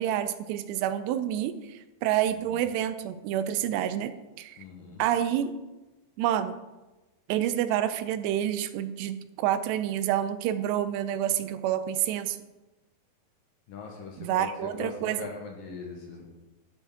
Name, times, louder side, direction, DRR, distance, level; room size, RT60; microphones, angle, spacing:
voice 1, 0.0-4.1 4.4-4.6 5.0-5.5 6.2-6.6 7.3-12.4 14.2-15.3, right 11 dB, 85° right, 12 dB, 2.6 m, -28 dB
voice 2, 4.6-5.0 13.7-16.2, left 4 dB, 65° left, 0 dB, 2.5 m, -41 dB
11.5 x 7.8 x 3.6 m, 1.1 s
omnidirectional pair, 4.9 m